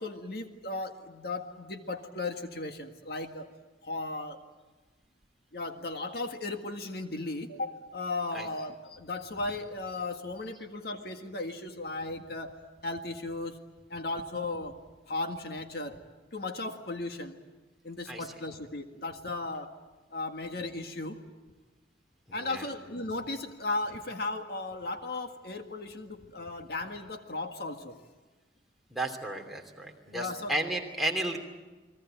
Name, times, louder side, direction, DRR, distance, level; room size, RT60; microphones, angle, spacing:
voice 1, 0.0-3.5 3.8-4.4 5.5-12.5 12.8-13.6 13.9-14.8 15.1-16.0 16.3-17.4 17.8-19.7 20.1-21.2 22.3-28.0 30.1-30.6, left 2 dB, 60° left, 6 dB, 1.8 m, -36 dB
voice 2, 28.9-31.4, right 1 dB, ahead, 1 dB, 3.0 m, -33 dB
30.0 x 21.5 x 9.1 m, 1.2 s
head